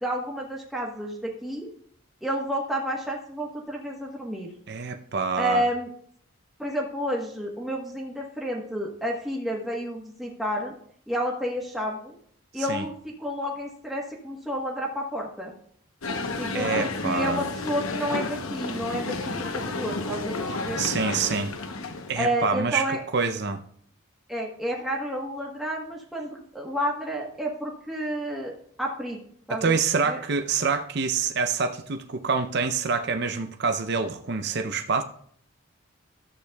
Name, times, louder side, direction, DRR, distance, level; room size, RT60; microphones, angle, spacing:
voice 1, 0.0-1.7 2.2-4.5 5.4-5.9 6.6-10.7 11.1-12.1 12.5-15.5 16.4-20.3 20.6-20.8 22.2-23.0 24.3-29.2 29.5-29.7 30.1-30.2, equal, ahead, 1.1 m, -30 dB
voice 2, 4.7-5.6 12.6-12.9 16.5-17.5 20.8-21.5 22.1-23.6 29.5-35.0, right 5 dB, 50° right, 0.5 m, -26 dB
sound 1, 16.0-22.2, left 3 dB, 85° left, 0.9 m, -31 dB
13.5 x 8.2 x 2.3 m
head